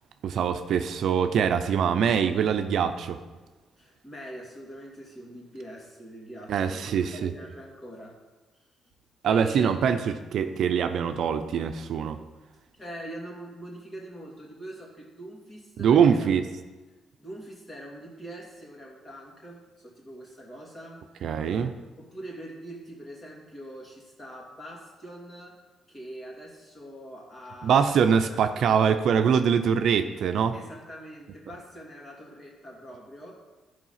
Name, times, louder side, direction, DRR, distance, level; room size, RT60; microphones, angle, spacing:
voice 1, 0.2-3.2 6.5-7.3 9.2-12.2 15.8-16.4 21.2-21.7 27.6-30.5, right 7 dB, 70° right, 8 dB, 0.6 m, -23 dB
voice 2, 3.8-8.2 9.3-9.7 12.7-16.3 17.2-21.7 22.0-25.6 25.9-28.0 28.3-28.4 30.5-33.5, right 1 dB, 30° left, -2 dB, 2.8 m, -43 dB
12.0 x 5.0 x 5.7 m, 1.2 s
cardioid pair, 90°, 0 cm